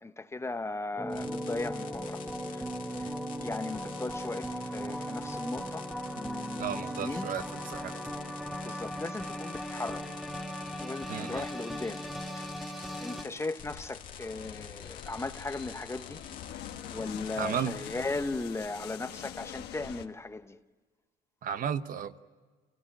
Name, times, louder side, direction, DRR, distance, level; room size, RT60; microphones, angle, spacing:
voice 1, 0.0-2.6 3.0-5.9 6.1-7.3 7.9-8.0 8.6-10.1 10.8-12.0 12.3-16.2 16.9-20.6, left 3 dB, 15° left, 0.9 m, -37 dB
sound 1, 1.0-13.2, equal, ahead, 1.6 m, -38 dB
sound 2, 1.1-18.1, left 8 dB, 50° left, 2.1 m, -49 dB
voice 2, 6.6-7.9 11.1-11.5 17.4-17.7 21.4-22.2, right 8 dB, 55° right, 1.0 m, -34 dB
sound 3, 13.6-20.1, left 10 dB, 75° left, 1.4 m, -44 dB
29.0 x 17.5 x 9.1 m
cardioid pair, 110°, 17 cm